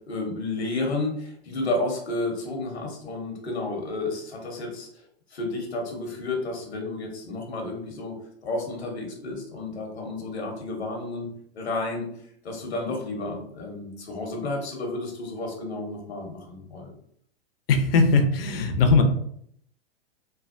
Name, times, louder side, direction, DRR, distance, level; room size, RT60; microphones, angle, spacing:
voice 1, 0.1-4.9 5.3-11.3 11.5-12.1 12.4-16.9, left 2 dB, 85° left, 1 dB, 1.0 m, -31 dB
voice 2, 17.7-19.0, left 4 dB, 65° left, 5 dB, 0.7 m, -19 dB
3.2 x 2.3 x 2.5 m, 0.68 s
hypercardioid pair, 110°, 32 cm